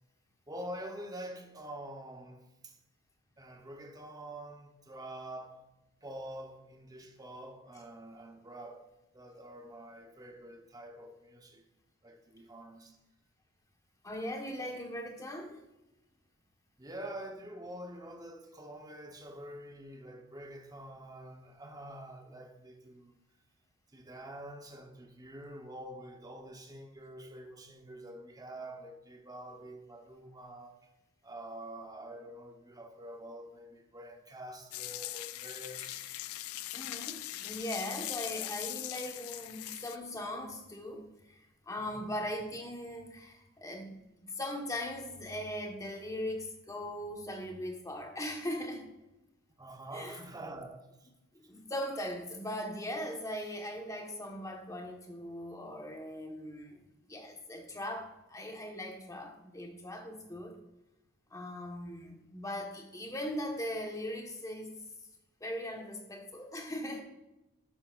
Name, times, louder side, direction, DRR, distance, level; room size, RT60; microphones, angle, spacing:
voice 1, 0.5-2.8 3.4-5.7 6.0-11.6 12.0-13.0 16.8-23.1 23.9-30.8 31.2-36.1 41.8-42.1 49.6-51.1, right 1 dB, 15° right, 1.0 m, -46 dB
voice 2, 14.0-15.6 36.7-43.9 44.3-48.9 49.9-50.2 51.3-60.6 61.3-64.7 65.4-67.0, left 1 dB, 15° left, 1.4 m, -39 dB
sound 1, 34.7-40.0, left 15 dB, 70° left, 0.4 m, -40 dB
12.0 x 8.4 x 2.6 m
head